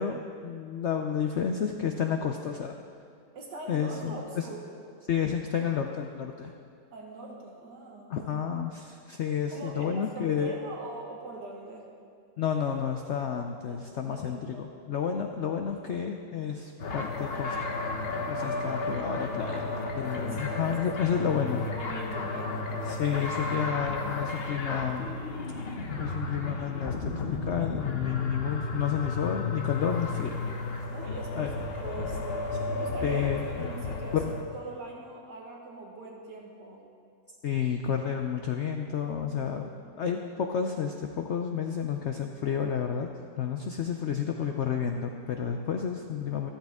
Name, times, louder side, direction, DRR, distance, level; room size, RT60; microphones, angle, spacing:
voice 1, 0.0-2.7 3.7-4.5 5.1-6.5 8.1-10.6 12.4-17.6 18.3-21.6 22.9-25.1 26.0-30.4 31.3-31.5 33.0-33.4 34.1-34.2 37.4-39.7 40.0-43.1 43.4-46.5, left 7 dB, 80° left, 4 dB, 0.6 m, -31 dB
voice 2, 3.3-4.7 6.9-8.3 9.5-11.9 13.7-14.6 19.5-20.8 21.1-21.3 21.6-22.6 30.9-31.5 31.8-33.2 33.6-34.2 34.5-36.8, right 3 dB, 70° right, -1 dB, 2.0 m, -42 dB
sound 1, 16.8-34.4, left 3 dB, 40° left, 1.0 m, -33 dB
13.0 x 13.0 x 3.6 m, 2.3 s
omnidirectional pair, 1.9 m